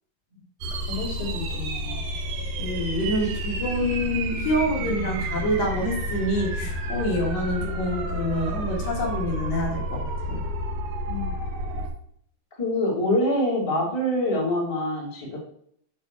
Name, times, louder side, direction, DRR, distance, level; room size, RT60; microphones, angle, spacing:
sound 1, 0.6-11.9, right 1 dB, 70° right, 1.5 m, -30 dB
voice 1, 0.9-2.1 11.1-11.4 12.6-15.4, left 1 dB, 10° left, -5 dB, 1.7 m, -26 dB
voice 2, 2.6-10.4, equal, 75° left, -2 dB, 3.4 m, -27 dB
9.9 x 3.5 x 4.5 m, 0.66 s
omnidirectional pair, 4.0 m